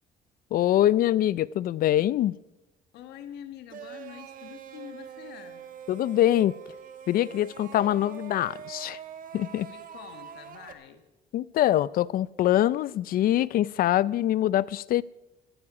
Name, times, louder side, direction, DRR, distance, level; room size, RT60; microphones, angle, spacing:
voice 1, 0.5-2.4 5.9-6.6 7.1-9.0 9.3-9.7 11.3-15.0, left 13 dB, 60° left, 0.5 m, -24 dB
voice 2, 2.9-5.6 9.7-11.1, left 10 dB, 80° left, 1.4 m, -45 dB
sound 1, 3.7-10.7, right 8 dB, 55° right, 1.3 m, -44 dB
16.0 x 14.5 x 4.9 m
cardioid pair, 110°, 17 cm